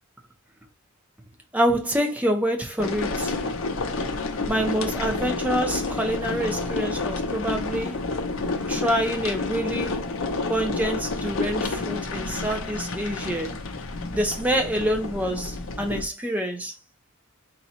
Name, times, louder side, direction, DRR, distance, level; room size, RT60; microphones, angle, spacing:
voice 1, 1.5-3.3 4.5-8.0 8.7-10.1 10.5-13.5 14.1-16.7, equal, 5° right, 0.7 m, -26 dB
sound 1, 2.8-16.0, left 3 dB, 60° left, 0.7 m, -29 dB
4.0 x 2.3 x 4.3 m
head